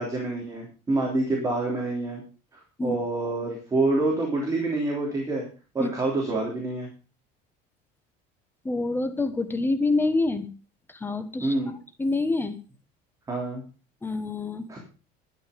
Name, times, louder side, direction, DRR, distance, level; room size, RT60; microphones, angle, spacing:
voice 1, 0.0-2.2 2.5-5.5 5.7-6.9 11.4-11.7 13.3-13.6 14.7-14.8, right 2 dB, 15° right, -1 dB, 3.4 m, -27 dB
voice 2, 8.6-10.5 11.0-11.5 12.0-12.6 14.0-14.7, left 3 dB, 10° left, 9 dB, 1.2 m, -26 dB
12.5 x 10.0 x 5.2 m, 0.35 s
cardioid pair, 160°, 20 cm